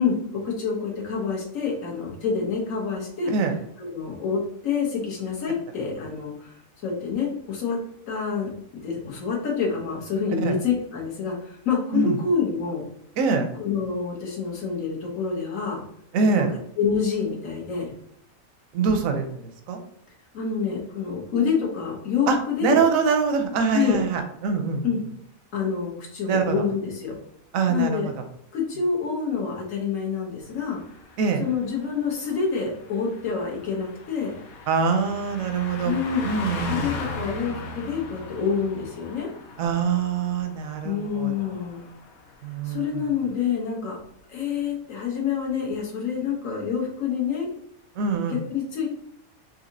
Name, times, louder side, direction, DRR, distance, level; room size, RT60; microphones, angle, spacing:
voice 1, 0.0-3.3 3.8-7.8 8.1-8.5 8.8-12.9 13.6-15.8 16.8-17.9 20.3-22.8 23.7-24.0 24.8-25.0 25.5-27.2 27.7-28.1 28.5-30.8 31.4-34.4 35.8-36.2 36.7-39.3 40.8-41.8 42.6-44.0 44.3-47.5 48.3-48.9, left 6 dB, 70° left, -2 dB, 1.3 m, -27 dB
voice 2, 13.2-13.5 16.1-16.5 18.7-19.8 22.3-24.9 26.3-26.6 27.5-28.1 31.2-31.4 34.7-35.9 36.2-37.0 39.6-41.3 42.4-43.0 48.0-48.4, right 5 dB, 75° right, 6 dB, 1.0 m, -24 dB
Car passing by, 30.5-42.4 42.7-43.0, left 3 dB, 90° left, 1.1 m, -38 dB
4.0 x 2.7 x 2.6 m, 0.69 s
omnidirectional pair, 1.5 m